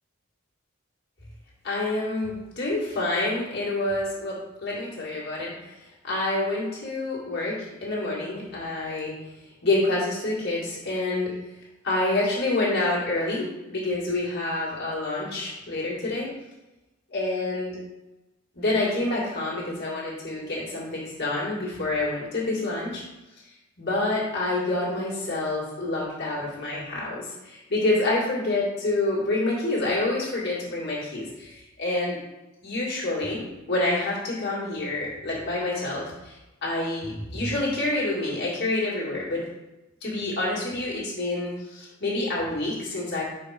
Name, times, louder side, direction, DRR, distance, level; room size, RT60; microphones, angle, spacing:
voice 1, 1.6-5.7 6.0-9.1 9.6-11.3 11.8-16.3 17.1-17.8 18.6-23.0 23.8-32.2 32.6-33.4 33.7-39.4 40.0-43.2, left 2 dB, 55° left, -6 dB, 2.0 m, -27 dB
5.3 x 4.4 x 4.9 m, 1.0 s
head